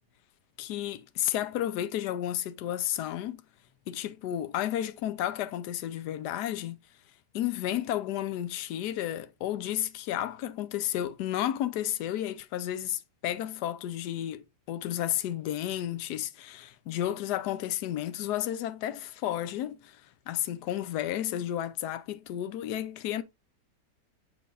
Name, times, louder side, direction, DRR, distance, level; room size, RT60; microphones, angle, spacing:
voice 1, 0.6-3.4 3.9-6.8 7.3-23.2, left 12 dB, 75° left, 1.2 m, -32 dB
7.1 x 6.0 x 2.5 m
omnidirectional pair, 1.8 m